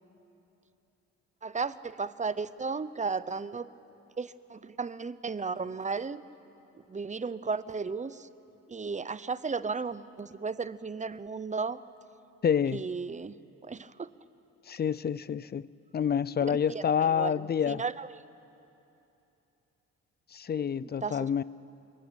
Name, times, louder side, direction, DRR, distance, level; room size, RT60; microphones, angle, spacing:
voice 1, 1.4-3.7 4.2-6.2 6.9-8.3 8.7-11.8 12.7-13.4 13.6-14.1 16.4-16.8 17.1-17.3 17.7-18.2 21.0-21.3, right 4 dB, 25° right, 15 dB, 0.8 m, -34 dB
voice 2, 12.4-12.8 14.7-15.6 15.9-17.8 20.3-21.4, left 8 dB, 35° left, 20 dB, 0.5 m, -28 dB
25.0 x 22.5 x 8.9 m, 2.9 s
cardioid pair, 90°, 30 cm